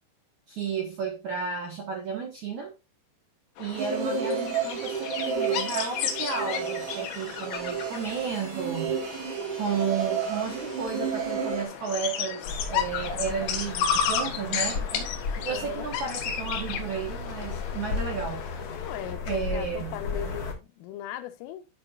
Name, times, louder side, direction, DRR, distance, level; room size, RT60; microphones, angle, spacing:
voice 1, 0.5-2.7 3.6-9.0 9.6-15.1 15.4-18.4 19.3-20.0, right 6 dB, 70° right, 1.8 m, -33 dB
sound 1, 3.6-19.1, left 7 dB, 70° left, 3.7 m, -34 dB
sound 2, 3.8-11.7, right 6 dB, 85° right, 5.5 m, -31 dB
sound 3, 12.4-20.5, left 4 dB, 55° left, 1.8 m, -35 dB
voice 2, 15.5-15.9 18.8-21.7, left 11 dB, 90° left, 3.5 m, -38 dB
12.0 x 5.7 x 2.4 m
omnidirectional pair, 5.7 m